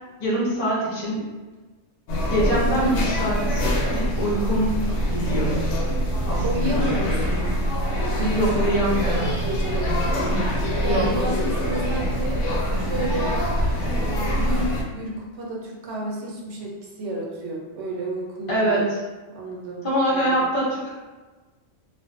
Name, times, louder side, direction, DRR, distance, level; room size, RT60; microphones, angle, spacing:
voice 1, 0.2-1.2 2.2-4.7 5.0-5.6 6.3-6.9 8.3-9.3 10.9-11.1 18.5-18.8 19.8-20.9, equal, 40° left, -6 dB, 0.5 m, -24 dB
sound 1, 2.1-14.8, equal, 85° left, 0.9 m, -24 dB
voice 2, 6.4-7.5 8.0-12.4 12.8-13.5 13.8-18.8 19.3-20.4, right 1 dB, 75° right, -2 dB, 0.9 m, -31 dB
2.5 x 2.2 x 2.4 m, 1.2 s
omnidirectional pair, 1.2 m